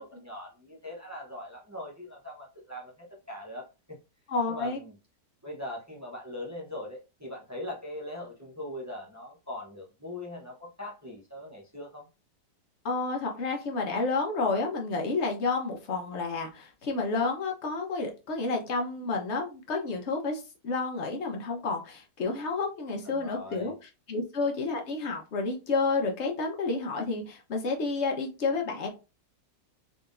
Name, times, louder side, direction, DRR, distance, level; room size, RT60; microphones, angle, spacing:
voice 1, 0.0-4.0 4.5-4.9 5.4-12.1 23.1-23.7, left 1 dB, 25° right, -2 dB, 0.4 m, -41 dB
voice 2, 4.3-4.8 12.8-28.9, left 3 dB, 45° left, 2 dB, 1.1 m, -30 dB
3.8 x 3.5 x 2.5 m, 0.29 s
omnidirectional pair, 1.9 m